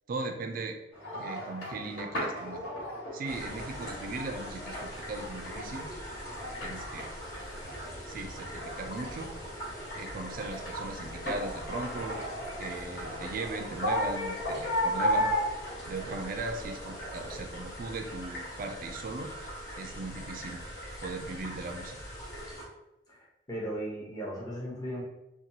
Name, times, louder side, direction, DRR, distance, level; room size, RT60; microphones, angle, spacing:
voice 1, 0.1-0.8 1.1-2.6 3.1-5.9 6.3-7.1 7.6-9.3 9.9-12.2 12.6-15.3 15.8-19.3 19.8-20.6 21.0-22.0, right 3 dB, 50° right, 5 dB, 0.4 m, -38 dB
sound 1, 0.9-17.4, equal, 85° left, 1.4 m, -36 dB
sound 2, 3.3-22.6, equal, 60° left, 1.0 m, -42 dB
voice 2, 23.1-25.0, equal, 20° left, -5 dB, 0.7 m, -37 dB
2.8 x 2.3 x 2.7 m, 0.93 s
head